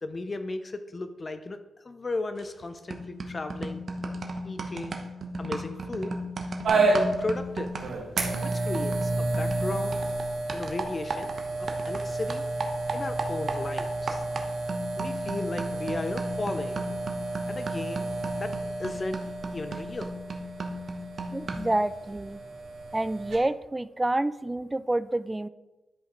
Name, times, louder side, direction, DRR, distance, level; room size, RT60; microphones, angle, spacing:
voice 1, 0.0-1.6 1.8-3.9 4.4-5.0 5.4-6.2 6.7-7.7 8.4-10.0 10.5-11.3 11.6-12.5 12.9-14.2 15.0-16.8 17.5-18.1 18.4-19.2 19.5-20.1, left 2 dB, 35° left, 9 dB, 0.6 m, -35 dB
sound 1, 2.4-2.6 2.9-12.0 12.3-21.8, right 2 dB, 55° right, 1.0 m, -36 dB
sound 2, 6.6-23.4, right 2 dB, 80° right, 1.7 m, -31 dB
voice 2, 21.3-22.4 22.9-25.5, right 1 dB, 15° right, 16 dB, 0.3 m, -28 dB
11.0 x 5.1 x 3.9 m, 1.1 s
cardioid pair, 75°, 0 cm